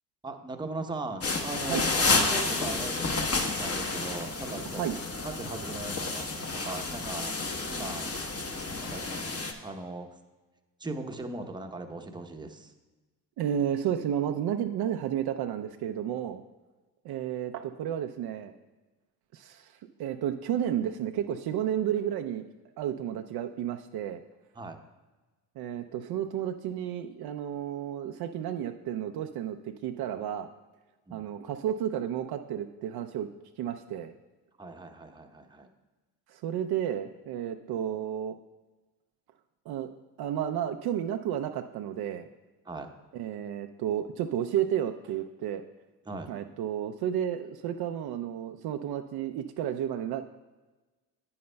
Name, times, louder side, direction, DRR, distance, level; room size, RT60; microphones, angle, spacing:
voice 1, 0.2-5.0 5.2-6.2 6.6-7.3 7.7-8.1 8.8-9.0 9.3-10.1 10.8-12.7 24.6-24.8 31.1-31.3 34.6-35.7 42.6-42.9 46.1-46.3, right 2 dB, 10° right, 4 dB, 0.8 m, -39 dB
sound 1, 1.2-9.5, left 3 dB, 30° left, 1.1 m, -30 dB
voice 2, 4.6-4.9 13.4-16.4 17.0-18.5 19.3-19.7 20.0-22.4 22.8-24.2 25.6-30.5 31.1-33.3 33.6-34.1 36.3-38.3 39.7-39.9 40.2-42.3 43.1-45.6 46.3-50.2, right 10 dB, 55° right, 6 dB, 0.5 m, -32 dB
9.5 x 9.3 x 2.2 m, 1.2 s
hypercardioid pair, 65°, 48 cm